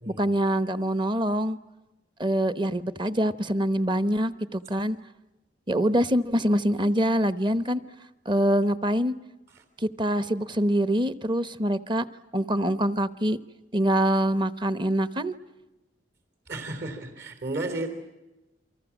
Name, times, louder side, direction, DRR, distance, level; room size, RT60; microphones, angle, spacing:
voice 1, 0.1-1.6 2.2-5.0 5.7-7.8 8.2-9.1 9.8-12.0 12.3-13.4 13.7-15.3, right 1 dB, 25° right, 14 dB, 0.9 m, -24 dB
voice 2, 16.5-17.9, right 2 dB, 60° right, 8 dB, 3.5 m, -33 dB
28.5 x 24.5 x 7.2 m, 1.0 s
head